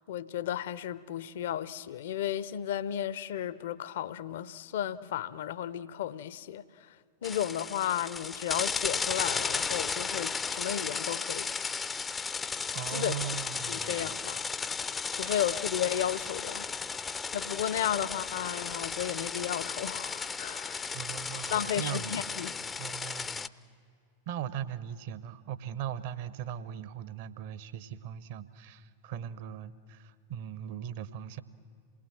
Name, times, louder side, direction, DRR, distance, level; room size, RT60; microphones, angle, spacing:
voice 1, 0.1-6.6 7.2-11.5 12.9-13.2 13.7-14.5 15.1-16.7 17.3-20.9 21.3-22.5, left 10 dB, 55° left, 0.7 m, -34 dB
sound 1, 7.2-23.5, left 5 dB, 15° left, 0.5 m, -34 dB
voice 2, 12.7-14.2 15.2-15.4 20.9-22.3 22.8-23.5 24.3-31.4, right 9 dB, 50° right, 0.9 m, -39 dB
27.5 x 19.5 x 7.5 m
figure-of-eight pair, 90°, 0 cm